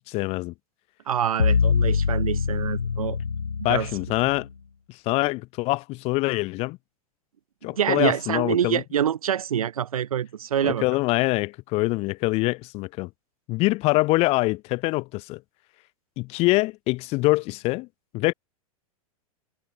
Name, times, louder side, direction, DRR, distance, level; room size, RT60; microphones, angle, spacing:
voice 1, 0.1-0.5 3.6-4.5 5.1-6.8 7.6-8.8 10.6-13.1 13.5-15.4 16.2-17.9 18.1-18.3, left 22 dB, 35° left, 0.6 m, -24 dB
voice 2, 1.1-3.2 3.7-3.9 7.7-10.8, right 9 dB, 70° right, 0.7 m, -26 dB
sound 1, 1.4-4.5, left 6 dB, 80° left, 1.0 m, -24 dB
figure-of-eight pair, 95°, 19 cm